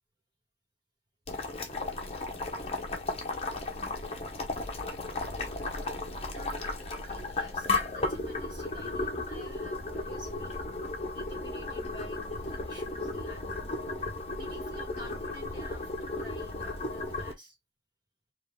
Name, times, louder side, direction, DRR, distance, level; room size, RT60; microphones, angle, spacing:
Boiling, 1.3-17.3, left 2 dB, 35° left, 0.9 m, -35 dB
voice 1, 2.9-3.3 6.4-6.6 6.9-10.6 11.1-13.7 14.3-17.6, equal, 25° right, 1.6 m, -50 dB
4.3 x 2.5 x 3.6 m
head